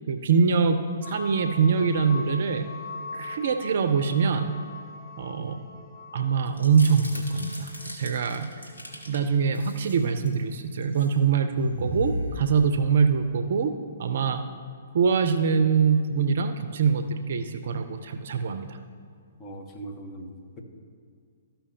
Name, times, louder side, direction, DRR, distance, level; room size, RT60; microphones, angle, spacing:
voice 1, 0.1-2.7 3.1-4.5 5.2-5.6 6.1-8.5 9.1-13.7 14.0-14.4 14.9-18.8, right 6 dB, 55° right, 8 dB, 0.5 m, -24 dB
sound 1, 1.0-9.1, left 3 dB, ahead, 1.4 m, -42 dB
sound 2, 6.5-9.2 9.5-10.4 10.8-11.1 11.5-13.1, equal, 80° left, 1.7 m, -36 dB
voice 2, 19.4-20.6, right 1 dB, 25° left, 2 dB, 1.1 m, -40 dB
13.5 x 5.6 x 2.8 m, 2.2 s
figure-of-eight pair, 125°, 0 cm